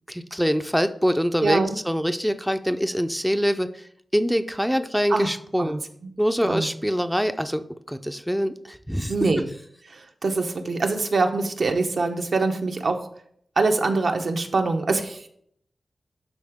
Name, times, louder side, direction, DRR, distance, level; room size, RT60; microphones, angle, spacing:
voice 1, 0.1-5.8 6.2-9.2, equal, ahead, 8 dB, 0.4 m, -24 dB
voice 2, 1.4-1.8 5.1-5.3 5.6-5.8 6.4-6.7 9.1-9.5 9.9-13.1 13.6-15.3, right 3 dB, 65° right, 4 dB, 0.9 m, -24 dB
11.5 x 3.9 x 3.5 m, 0.65 s
wide cardioid pair, 75°, 0 cm